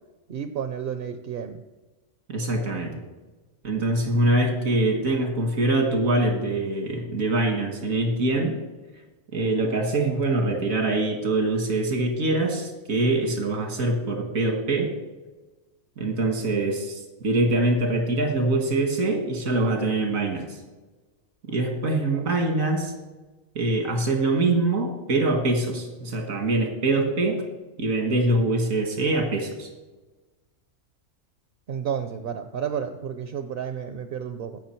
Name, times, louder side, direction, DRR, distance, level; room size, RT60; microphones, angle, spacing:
voice 1, 0.3-1.6 22.1-22.2 31.7-34.6, right 8 dB, 55° right, 8 dB, 0.7 m, -31 dB
voice 2, 2.3-3.0 3.6-8.6 9.3-14.9 16.0-20.6 21.5-22.9 23.6-27.4 27.8-29.7, right 2 dB, 90° right, 3 dB, 2.1 m, -24 dB
16.0 x 6.0 x 4.5 m, 1.2 s
omnidirectional pair, 1.4 m